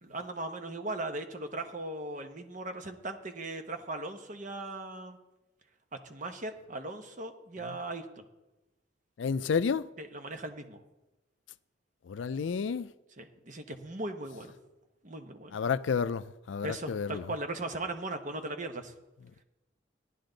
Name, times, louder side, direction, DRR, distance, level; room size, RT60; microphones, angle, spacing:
voice 1, 0.0-5.2 6.0-8.1 10.0-10.8 13.2-14.5 15.0-15.6 16.6-18.9, right 2 dB, 40° right, 1.0 m, -38 dB
voice 2, 9.2-9.8 12.1-12.9 15.5-17.2, left 6 dB, 80° left, 0.4 m, -30 dB
14.5 x 11.0 x 3.9 m
head